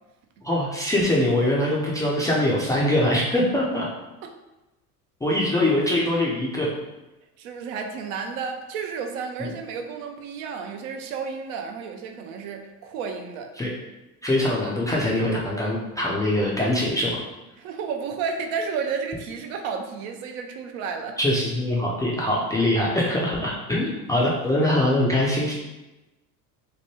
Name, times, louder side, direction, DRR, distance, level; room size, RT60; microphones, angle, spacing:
voice 1, 0.4-3.9 5.2-6.7 9.4-9.5 13.6-13.7 14.2-17.2 21.2-25.5, left 1 dB, 10° left, -5 dB, 0.3 m, -23 dB
voice 2, 7.4-13.5 17.6-21.2, right 5 dB, 65° right, 4 dB, 0.6 m, -32 dB
2.9 x 2.2 x 3.0 m, 1.0 s
hypercardioid pair, 70°, 46 cm